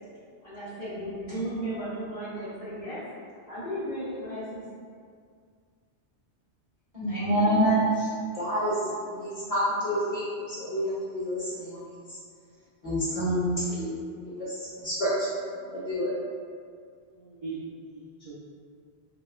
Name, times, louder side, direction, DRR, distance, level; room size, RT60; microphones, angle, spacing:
voice 1, 0.4-3.0 3.5-4.6, right 1 dB, 55° left, -15 dB, 1.4 m, -35 dB
voice 2, 6.9-8.1 8.4-11.8 12.8-13.9 14.4-15.3 15.7-16.1, equal, 15° left, -13 dB, 1.4 m, -27 dB
voice 3, 17.1-18.3, right 3 dB, 55° right, -7 dB, 0.4 m, -41 dB
5.0 x 2.1 x 2.3 m, 2.1 s
omnidirectional pair, 1.1 m